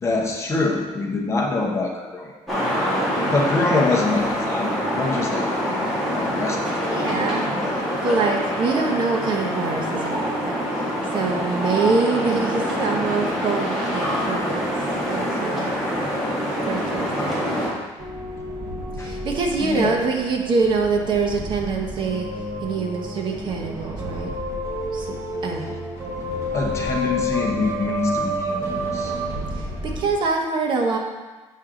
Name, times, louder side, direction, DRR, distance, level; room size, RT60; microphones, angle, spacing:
voice 1, 0.0-2.3 3.3-7.1 7.5-7.7 19.0-19.1 19.6-20.0 26.5-29.1, left 3 dB, 25° left, 0 dB, 0.9 m, -25 dB
sound 1, 2.5-17.7, equal, ahead, 1.8 m, -25 dB
voice 2, 6.9-7.4 8.0-10.7 11.1-14.7 15.1-15.7 16.7-17.4 19.0-22.3 22.6-24.3 24.9-25.1 25.4-25.7 29.6-29.7 30.0-31.0, right 4 dB, 40° right, 2 dB, 0.9 m, -24 dB
sound 2, 18.0-30.2, equal, 20° right, 1.2 m, -30 dB
7.5 x 6.2 x 3.7 m, 1.2 s
cardioid pair, 170°, 12 cm